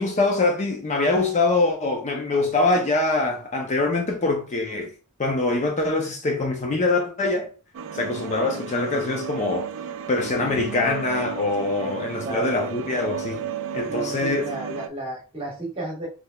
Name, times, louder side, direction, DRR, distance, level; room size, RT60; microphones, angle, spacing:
voice 1, 0.0-4.9 5.2-7.5 7.9-9.7 10.1-13.4 13.7-14.5, left 3 dB, 30° left, 0.5 m, -24 dB
sound 1, 7.7-14.9, right 7 dB, 60° right, 0.3 m, -33 dB
voice 2, 11.8-12.7 13.9-16.1, right 1 dB, 25° right, 1.3 m, -34 dB
3.8 x 3.1 x 2.2 m
head